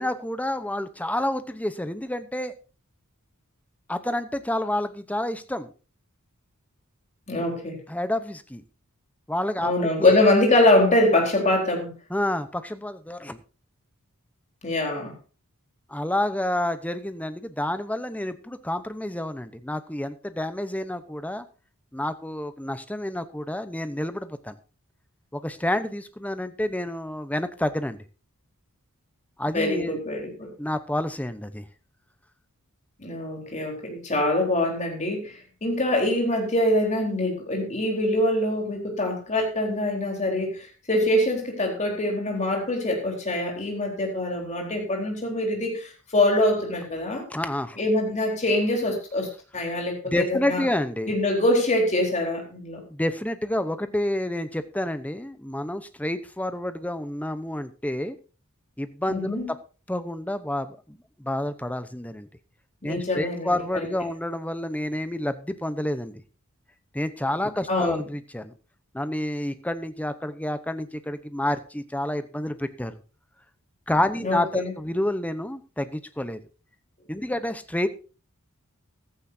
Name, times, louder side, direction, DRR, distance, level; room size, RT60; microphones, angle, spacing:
voice 1, 0.0-2.5 3.9-5.7 7.9-8.6 9.3-10.2 12.1-13.4 15.9-21.4 21.9-24.6 25.3-28.0 29.4-30.0 30.6-31.6 47.3-47.8 50.0-51.1 52.9-58.2 58.8-59.4 59.9-62.3 62.8-66.2 66.9-68.5 68.9-73.0 73.9-76.4 77.1-77.9, left 1 dB, 5° left, 11 dB, 0.9 m, -29 dB
voice 2, 7.3-7.8 9.6-11.9 14.6-15.1 29.5-30.5 33.0-47.2 47.8-50.6 51.1-52.8 59.1-59.5 62.8-63.9 67.7-68.0 74.2-74.7, left 1 dB, 35° left, 1 dB, 4.2 m, -24 dB
15.0 x 13.5 x 2.8 m, 0.33 s
head